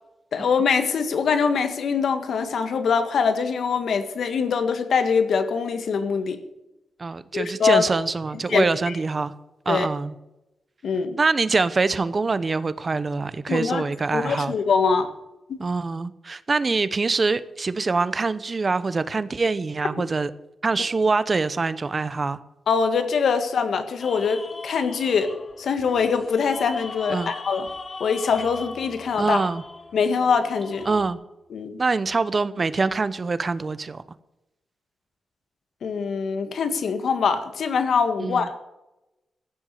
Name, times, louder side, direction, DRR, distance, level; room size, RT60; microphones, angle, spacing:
voice 1, 0.3-6.4 7.3-7.9 8.5-8.6 9.7-9.9 10.8-11.2 13.5-13.8 14.1-15.1 15.5-15.6 22.7-25.3 25.6-27.7 28.0-29.4 29.9-30.9 31.5-31.8 35.8-38.6, left 5 dB, 75° left, 9 dB, 1.7 m, -23 dB
voice 2, 7.0-9.3 9.7-10.2 11.2-14.5 15.6-20.3 20.6-22.4 27.1-27.3 29.2-29.6 30.9-31.2 31.8-34.0 38.2-38.5, right 4 dB, 35° right, 15 dB, 0.9 m, -24 dB
sound 1, 24.0-31.1, left 3 dB, 40° left, 1.4 m, -39 dB
15.5 x 7.2 x 9.2 m, 0.95 s
cardioid pair, 95°, 0 cm